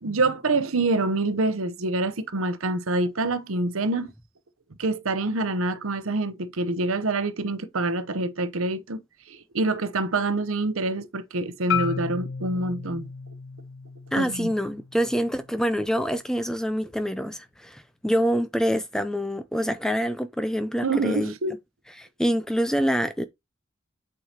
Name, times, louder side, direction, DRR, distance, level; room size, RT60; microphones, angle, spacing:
voice 1, 0.0-4.1 4.8-9.0 9.3-13.1 14.2-14.5 20.8-21.5, right 2 dB, 75° right, 0.8 m, -26 dB
Marimba xylophone, 11.7-15.9, left 6 dB, 60° left, 0.5 m, -34 dB
voice 2, 14.1-21.3 22.0-23.2, equal, 5° left, 0.4 m, -26 dB
8.0 x 4.7 x 2.9 m
head